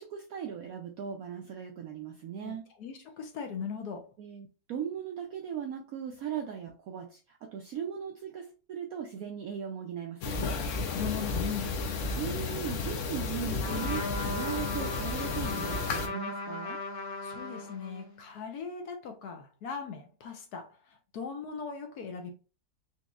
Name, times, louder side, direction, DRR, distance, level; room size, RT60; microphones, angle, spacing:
voice 1, 0.0-2.6 4.2-10.5 12.1-16.8, right 8 dB, 75° right, 0.8 m, -38 dB
voice 2, 2.4-4.1 10.9-11.7 17.2-22.3, left 6 dB, 65° left, 1.1 m, -39 dB
sound 1, 10.2-16.1, left 4 dB, 90° left, 0.6 m, -33 dB
Trumpet, 13.6-18.2, left 2 dB, 45° left, 0.8 m, -38 dB
4.1 x 2.7 x 2.3 m
omnidirectional pair, 2.0 m